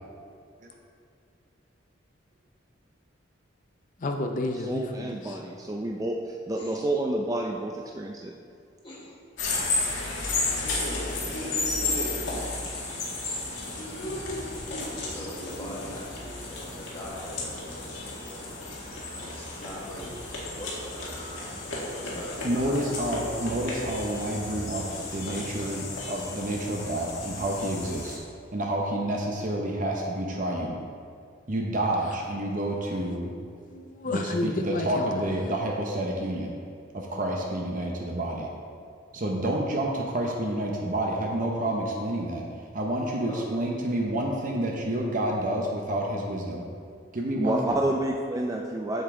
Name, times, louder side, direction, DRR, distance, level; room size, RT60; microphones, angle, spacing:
voice 1, 4.0-5.4 18.8-19.1 33.7-35.2, left 2 dB, 45° left, 4 dB, 0.5 m, -31 dB
voice 2, 4.7-8.4 47.4-49.0, right 1 dB, 20° right, 0 dB, 0.4 m, -29 dB
voice 3, 8.8-9.2 15.0-18.6 19.1-20.2 20.5-22.9 43.3-43.4, equal, 25° left, -9 dB, 1.2 m, -43 dB
sound 1, 9.4-28.2, left 2 dB, 85° left, 2.0 m, -33 dB
voice 4, 22.4-24.8 25.1-28.2 28.5-30.8 31.5-33.3 34.1-36.5 36.9-38.5 39.1-42.4 42.7-46.6 47.1-47.8, right 1 dB, 45° right, 0 dB, 0.8 m, -29 dB
7.9 x 7.0 x 3.7 m, 2.3 s
head